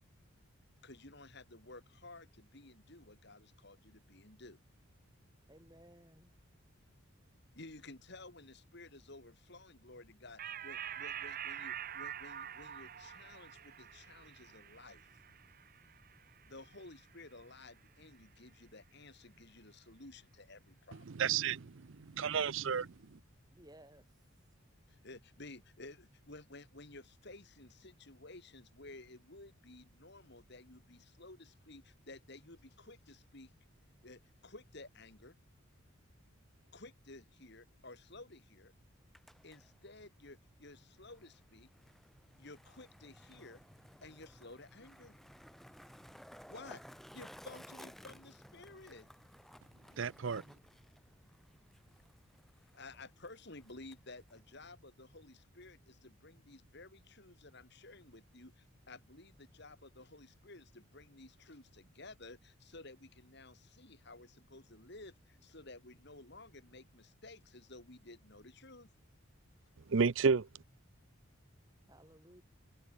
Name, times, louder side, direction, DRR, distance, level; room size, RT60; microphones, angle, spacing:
voice 1, 0.8-4.6 7.5-15.1 16.4-21.1 24.9-33.5 34.0-35.4 36.7-38.7 39.4-41.7 42.4-43.6 44.0-45.2 46.5-49.1 52.7-68.9, left 2 dB, 50° left, 2.9 m, -54 dB
voice 2, 5.5-6.4 23.5-24.1 71.9-72.4, right 1 dB, 15° right, 7.2 m, -59 dB
sound 1, 10.4-17.3, right 9 dB, 40° right, 0.8 m, -46 dB
voice 3, 21.2-21.6 22.2-22.9 50.0-50.4 69.9-70.5, right 5 dB, 60° right, 0.5 m, -30 dB
Skateboard, 38.9-54.7, equal, ahead, 1.8 m, -58 dB
head